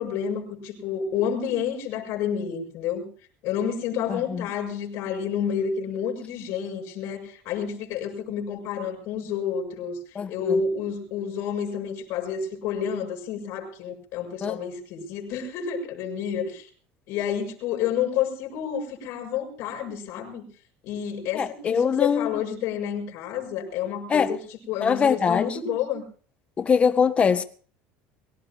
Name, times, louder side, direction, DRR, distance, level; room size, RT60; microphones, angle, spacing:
voice 1, 0.0-3.1 3.4-10.0 10.3-16.6 17.1-20.5 20.8-24.4 24.7-26.0, left 7 dB, 65° left, 7.0 m, -29 dB
voice 2, 4.1-4.5 10.1-10.6 14.4-14.6 21.3-22.4 24.1-24.3 24.8-25.6 26.6-27.4, left 6 dB, 25° left, 1.5 m, -23 dB
24.0 x 17.5 x 2.8 m
cardioid pair, 150°, 5 cm